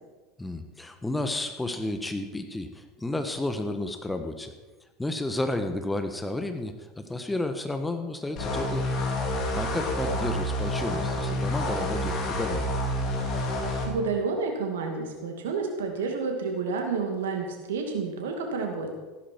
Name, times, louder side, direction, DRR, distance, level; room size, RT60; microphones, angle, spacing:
voice 1, 0.4-4.5 5.0-8.9 9.5-12.7, left 2 dB, 10° left, 7 dB, 1.3 m, -32 dB
sound 1, 8.4-13.9, left 1 dB, 45° left, 3.0 m, -28 dB
voice 2, 13.9-18.9, right 4 dB, 70° right, 3 dB, 2.4 m, -30 dB
14.5 x 12.0 x 4.6 m, 1.2 s
figure-of-eight pair, 75°, 0 cm